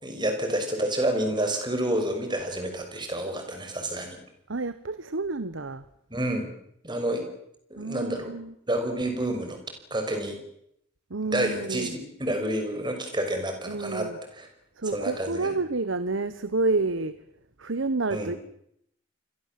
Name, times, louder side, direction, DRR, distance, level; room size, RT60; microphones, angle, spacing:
voice 1, 0.0-4.2 6.1-6.5 6.8-7.2 7.7-8.3 8.7-9.6 9.9-10.4 11.3-14.1 14.3-14.5 14.9-15.5 18.1-18.3, right 1 dB, 20° right, 5 dB, 5.8 m, -29 dB
voice 2, 4.5-5.8 7.8-8.5 11.1-12.0 13.7-14.2 14.8-17.2 17.6-18.4, right 3 dB, 70° right, 13 dB, 1.1 m, -29 dB
29.0 x 22.0 x 7.6 m, 0.75 s
head